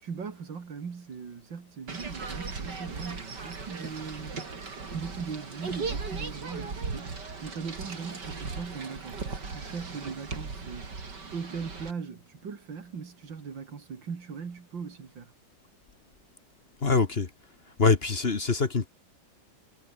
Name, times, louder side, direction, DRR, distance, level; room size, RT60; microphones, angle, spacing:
voice 1, 0.0-4.4 4.9-15.3, right 5 dB, 80° right, 3.2 m, -39 dB
sound 1, 1.9-11.9, right 4 dB, 65° right, 3.9 m, -38 dB
voice 2, 16.8-17.3 17.8-18.9, left 4 dB, 35° left, 1.5 m, -24 dB
omnidirectional pair, 2.0 m